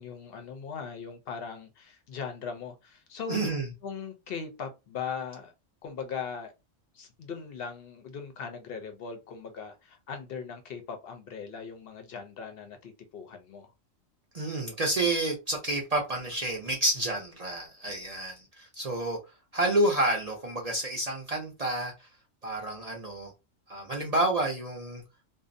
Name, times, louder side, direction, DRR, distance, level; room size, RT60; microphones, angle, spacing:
voice 1, 0.0-3.5 3.8-5.5 5.8-6.5 6.9-13.7, left 6 dB, 60° left, 0.7 m, -39 dB
voice 2, 3.3-3.6 14.3-19.2 19.5-22.1 22.4-23.3 23.7-25.0, right 1 dB, 50° right, 0.4 m, -29 dB
2.6 x 2.0 x 2.5 m
omnidirectional pair, 1.4 m